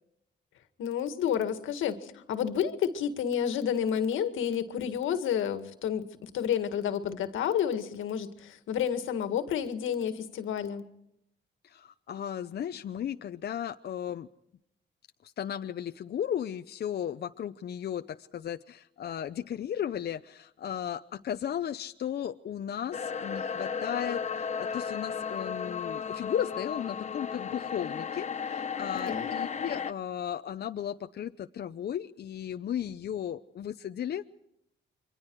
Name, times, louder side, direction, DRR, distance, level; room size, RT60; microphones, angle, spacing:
voice 1, 0.8-10.8 28.9-29.3, left 8 dB, 80° left, 9 dB, 1.9 m, -30 dB
voice 2, 11.6-14.3 15.2-34.3, left 9 dB, 55° left, 8 dB, 0.7 m, -35 dB
sound 1, 22.9-29.9, left 6 dB, 35° left, 1.1 m, -34 dB
28.5 x 23.5 x 4.7 m, 0.80 s
cardioid pair, 90°, 20 cm